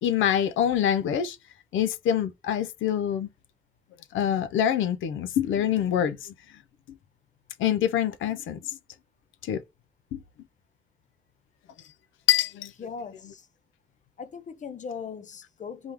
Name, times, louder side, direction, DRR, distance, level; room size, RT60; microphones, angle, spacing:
voice 1, 0.0-1.4 1.7-3.3 4.1-6.3 7.6-8.8 9.4-9.6 10.1-10.2 12.3-12.7 13.2-13.3, left 10 dB, 80° left, 0.6 m, -25 dB
voice 2, 12.8-13.4 14.2-15.9, left 6 dB, 40° left, 0.7 m, -39 dB
3.5 x 3.4 x 2.9 m
cardioid pair, 90°, 20 cm